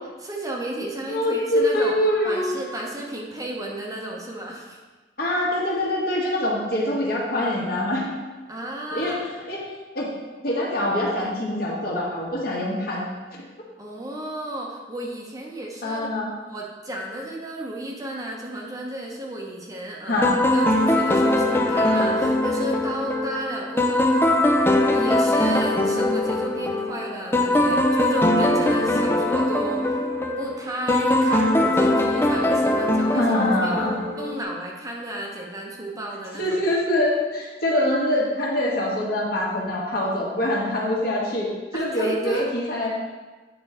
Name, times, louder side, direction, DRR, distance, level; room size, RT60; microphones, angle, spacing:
voice 1, 0.2-1.9 2.2-4.8 8.5-9.2 13.8-16.1 16.5-20.3 20.5-24.3 24.9-29.8 30.4-33.2 33.6-33.9 34.2-36.6 41.7-42.4, right 1 dB, 20° right, -2 dB, 0.9 m, -33 dB
voice 2, 1.1-2.5 5.2-8.1 8.9-9.2 9.5-9.6 9.9-10.1 10.4-13.0 15.8-16.3 20.0-20.4 33.1-33.9 36.3-42.9, left 1 dB, 60° left, -3 dB, 1.5 m, -24 dB
sound 1, 20.2-34.4, left 1 dB, 15° left, 0.4 m, -21 dB
8.5 x 3.8 x 4.3 m, 1.3 s
head